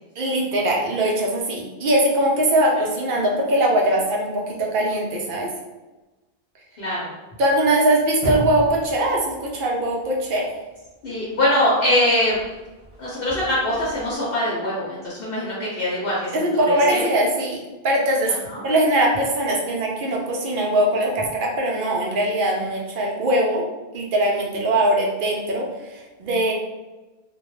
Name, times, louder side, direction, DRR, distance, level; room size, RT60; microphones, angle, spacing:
voice 1, 0.2-5.5 7.4-10.4 16.3-17.6 17.8-18.4 18.6-23.6 23.9-26.5, right 1 dB, 60° right, -1 dB, 0.7 m, -21 dB
voice 2, 6.8-7.1 11.0-12.4 13.0-17.0 18.2-18.6, left 1 dB, 70° left, -6 dB, 0.9 m, -23 dB
sound 1, 7.9-11.2 12.3-14.1, equal, 30° right, 0.8 m, -34 dB
2.2 x 2.2 x 3.0 m, 1.1 s
omnidirectional pair, 1.0 m